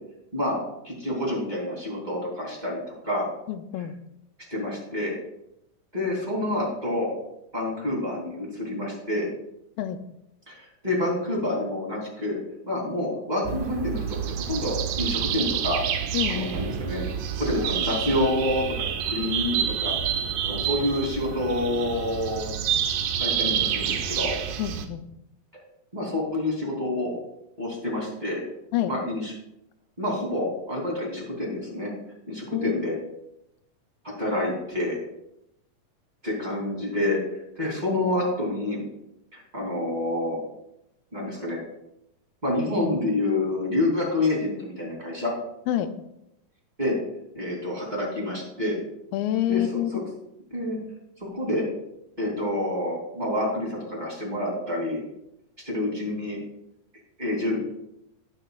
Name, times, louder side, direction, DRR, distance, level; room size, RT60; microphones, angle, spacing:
voice 1, 0.8-3.3 4.5-5.1 5.9-7.1 7.5-9.3 10.5-12.4 12.7-14.2 14.5-15.8 16.3-17.0 17.4-18.6 19.1-19.9 20.5-22.6 23.2-24.3 25.9-27.2 27.6-28.4 28.9-29.3 30.0-31.9 32.3-32.9 34.2-35.0 36.2-37.2 37.5-38.8 39.3-40.4 41.1-41.6 42.4-45.3 46.8-47.0 47.3-48.8 49.5-50.0 50.5-50.8 51.2-51.6 52.2-55.0 55.6-56.4 57.2-57.6, left 1 dB, 15° right, -3 dB, 2.7 m, -28 dB
voice 2, 3.5-4.0 9.8-10.0 16.1-16.6 24.6-25.0 28.7-28.9 32.5-32.8 45.7-45.9 49.1-49.9, left 12 dB, 85° left, 10 dB, 2.4 m, -27 dB
sound 1, 13.4-24.9, right 9 dB, 75° right, 2.2 m, -28 dB
19.0 x 6.5 x 2.4 m, 0.83 s
omnidirectional pair, 4.0 m